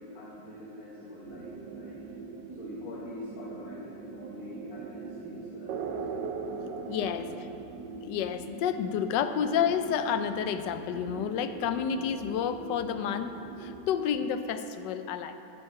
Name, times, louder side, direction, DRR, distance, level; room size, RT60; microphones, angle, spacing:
voice 1, 0.0-2.0 2.6-6.2 7.1-7.6, left 1 dB, 55° left, -5 dB, 1.7 m, -45 dB
sound 1, 1.3-13.8, right 4 dB, 85° right, 1.3 m, -41 dB
voice 2, 6.9-7.3 8.0-13.3 13.6-15.4, left 8 dB, 85° left, 10 dB, 1.2 m, -30 dB
8.7 x 8.4 x 5.6 m, 2.8 s
omnidirectional pair, 1.9 m